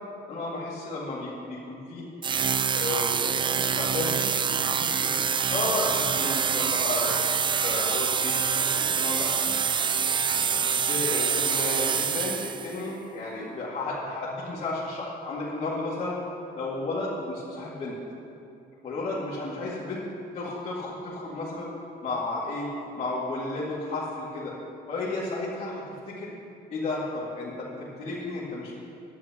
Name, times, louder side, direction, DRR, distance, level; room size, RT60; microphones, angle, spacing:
voice 1, 0.3-2.1 2.7-5.2 5.5-7.2 7.6-9.4 10.4-16.2 16.6-18.0 18.8-20.0 20.3-21.7 22.0-22.7 23.0-24.5 24.9-26.3 26.7-28.8, left 2 dB, 40° left, -9 dB, 2.3 m, -33 dB
sound 1, 2.2-12.8, right 7 dB, 30° right, 0.4 m, -26 dB
17.0 x 11.0 x 3.0 m, 2.7 s
cardioid pair, 110°, 17 cm